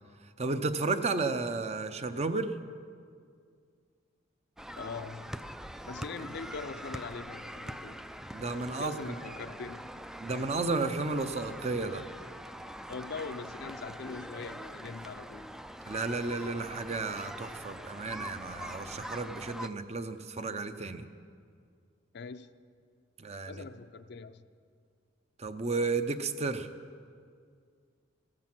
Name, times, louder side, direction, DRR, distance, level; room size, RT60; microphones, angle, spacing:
voice 1, 0.4-2.5 8.3-9.1 10.2-12.0 15.9-21.0 23.2-23.6 25.4-26.7, right 3 dB, 35° right, 0.7 m, -33 dB
sound 1, 4.6-19.7, equal, 5° right, 0.3 m, -43 dB
voice 2, 4.8-5.3 5.9-8.0 8.7-9.9 12.9-15.5 22.1-22.5 23.5-24.5, left 4 dB, 60° left, 0.5 m, -42 dB
15.0 x 14.5 x 6.1 m
head